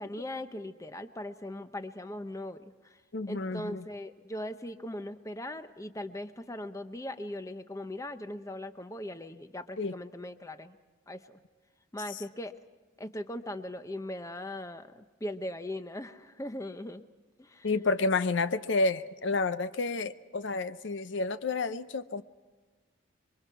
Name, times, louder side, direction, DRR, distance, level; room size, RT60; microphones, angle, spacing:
voice 1, 0.0-3.0 3.3-10.8 11.1-11.4 11.9-12.5 13.0-17.0 17.4-17.7, left 1 dB, 15° left, 10 dB, 0.7 m, -39 dB
voice 2, 3.1-3.9 9.8-9.9 12.1-12.2 17.6-22.2, left 3 dB, 60° left, 12 dB, 0.6 m, -30 dB
27.0 x 23.5 x 4.6 m, 1.3 s
head